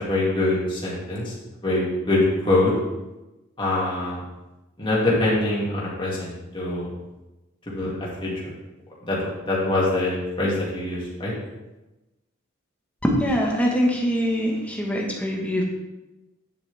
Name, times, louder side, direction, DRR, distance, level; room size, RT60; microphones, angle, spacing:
voice 1, 0.1-1.3 1.6-2.7 3.6-4.2 4.8-6.9 7.7-7.9 8.2-8.5 9.0-11.3, left 2 dB, 25° left, -6 dB, 2.4 m, -24 dB
voice 2, 13.0-15.6, equal, 5° left, -2 dB, 1.4 m, -23 dB
9.3 x 7.5 x 3.5 m, 1.0 s
head